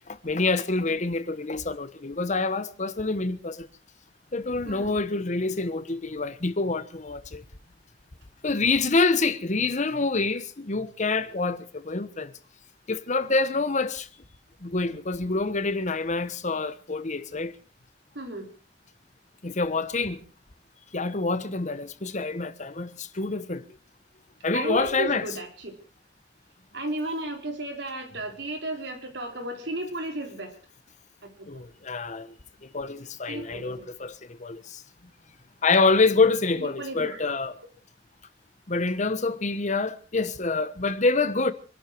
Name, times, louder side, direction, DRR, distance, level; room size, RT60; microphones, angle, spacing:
voice 1, 0.1-3.7 4.3-7.4 8.4-12.3 12.9-14.1 14.6-17.5 19.4-20.2 20.9-23.6 24.4-25.3 31.5-32.3 32.6-34.8 35.6-37.6 38.7-41.5, left 3 dB, 45° left, 1.1 m, -26 dB
voice 2, 4.7-5.0 18.1-18.5 24.5-25.7 26.7-30.5 31.2-31.5 33.3-33.9 36.6-37.2, right 1 dB, 75° right, 4.2 m, -34 dB
25.5 x 12.0 x 4.6 m
head